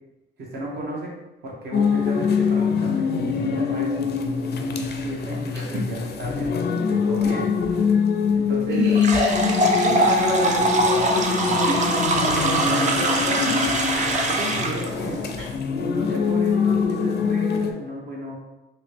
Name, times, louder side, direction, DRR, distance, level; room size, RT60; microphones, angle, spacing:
voice 1, 0.4-1.1 1.4-4.2 5.0-7.5 8.3-8.8 11.5-11.8 12.2-13.0 14.2-15.3 15.8-18.4, right 1 dB, 55° right, -3 dB, 1.1 m, -33 dB
sound 1, 1.7-17.7, left 5 dB, 55° left, 0.4 m, -24 dB
voice 2, 8.7-14.3 16.1-16.2, equal, 75° right, -11 dB, 1.3 m, -30 dB
sound 2, 8.9-14.9, right 1 dB, 40° right, 0.5 m, -22 dB
3.0 x 2.7 x 3.3 m, 0.98 s
cardioid pair, 90°, 20 cm